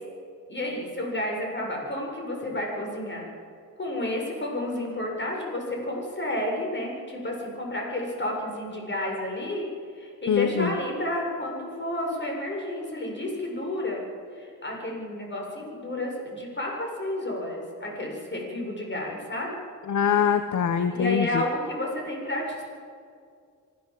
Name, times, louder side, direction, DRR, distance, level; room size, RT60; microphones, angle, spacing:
voice 1, 0.5-3.3 3.8-9.7 10.0-14.0 14.3-19.6 20.9-22.6, left 1 dB, 35° left, 0 dB, 7.0 m, -31 dB
voice 2, 10.3-10.7 19.9-21.4, left 7 dB, 60° left, 9 dB, 1.1 m, -23 dB
25.0 x 15.5 x 7.7 m, 2.3 s
cardioid pair, 80°, 33 cm